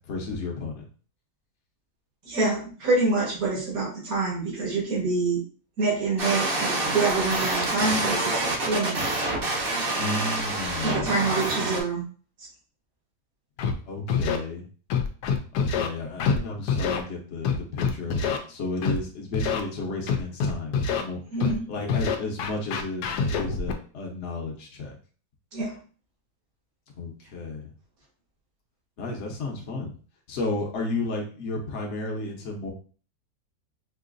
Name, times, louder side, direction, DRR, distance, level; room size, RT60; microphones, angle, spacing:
voice 1, 0.1-0.8 10.0-11.1 13.9-14.6 15.5-21.2 21.7-23.0 23.3-24.9 27.0-27.7 29.0-29.9 30.3-32.7, left 2 dB, 55° left, 0 dB, 1.1 m, -32 dB
voice 2, 2.3-5.4 5.8-9.0 10.8-12.1 12.4-12.5 21.3-21.7 25.5-25.8, right 3 dB, 65° right, -4 dB, 1.9 m, -26 dB
sound 1, 6.2-11.8, right 2 dB, 45° right, 1.0 m, -27 dB
Scratching (performance technique), 13.6-13.7 14.1-14.4 14.9-15.9 16.2-16.4 16.7-17.0 17.4-18.4 18.8-19.0 19.3-19.6 20.1-21.0 21.4-21.6 21.9-23.7, left 5 dB, 85° left, 1.1 m, -25 dB
4.7 x 2.6 x 2.5 m, 0.40 s
omnidirectional pair, 1.7 m